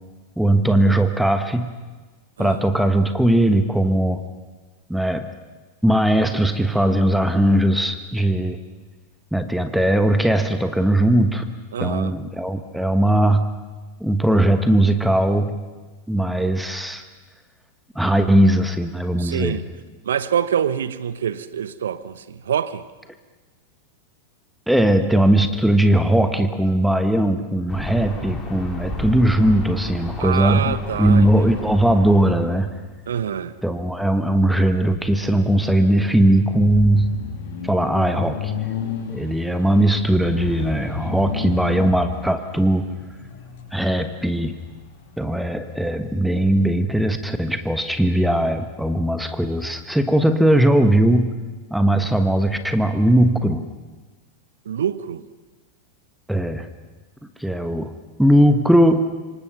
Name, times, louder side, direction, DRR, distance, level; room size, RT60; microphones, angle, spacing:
voice 1, 0.4-1.7 2.4-4.2 4.9-5.3 5.8-8.6 9.3-11.4 11.8-13.5 14.0-15.6 16.1-17.0 17.9-19.6 24.7-32.7 33.6-37.2 37.6-38.5 39.1-42.9 43.7-44.6 45.2-51.3 51.7-53.7 56.3-56.7 57.4-57.9 58.2-59.1, right 1 dB, ahead, 1.3 m, -19 dB
voice 2, 11.7-12.1 19.2-19.7 20.0-22.8 30.2-31.3 33.1-33.5 54.6-55.2, right 8 dB, 65° right, 0.9 m, -25 dB
sound 1, 27.7-32.7, left 1 dB, 15° left, 5.0 m, -32 dB
sound 2, 28.8-46.0, left 6 dB, 50° left, 6.0 m, -35 dB
27.0 x 24.5 x 6.0 m
figure-of-eight pair, 90°, 0 cm